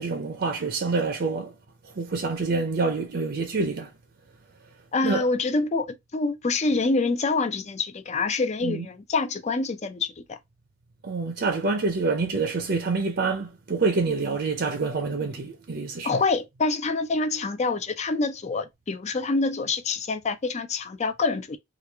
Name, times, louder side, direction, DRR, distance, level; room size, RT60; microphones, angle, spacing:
voice 1, 0.0-1.5 1.8-3.9 5.0-5.3 8.6-8.9 11.0-16.1, right 4 dB, 60° right, 0.6 m, -27 dB
voice 2, 4.9-10.4 16.0-21.6, left 3 dB, 35° left, 0.5 m, -26 dB
3.1 x 2.4 x 3.4 m
head